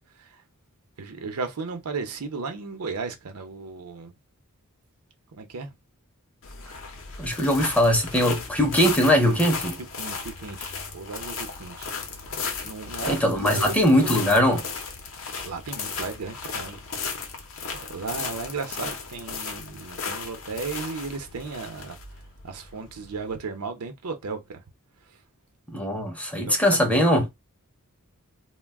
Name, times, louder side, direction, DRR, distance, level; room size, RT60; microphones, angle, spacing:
voice 1, 1.0-4.1 5.3-5.8 10.0-12.0 12.6-14.1 15.4-16.8 17.7-24.6 25.1-25.2 26.5-26.8, right 4 dB, 85° right, 0.7 m, -35 dB
sound 1, 6.4-23.3, left 5 dB, 60° left, 0.6 m, -35 dB
voice 2, 7.2-9.8 13.1-14.7 25.7-27.2, equal, 5° left, 0.5 m, -21 dB
2.3 x 2.2 x 3.4 m
head